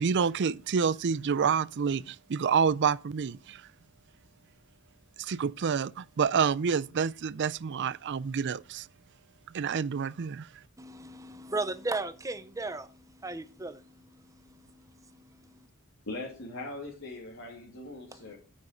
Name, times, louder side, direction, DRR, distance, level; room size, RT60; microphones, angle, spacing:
voice 1, 0.0-3.6 5.2-8.9 9.5-10.5, right 6 dB, 55° right, 0.4 m, -28 dB
voice 2, 10.8-15.7 18.1-18.4, right 2 dB, 15° right, 0.6 m, -37 dB
voice 3, 16.1-18.4, left 2 dB, 60° left, 2.7 m, -40 dB
9.6 x 7.3 x 5.1 m
head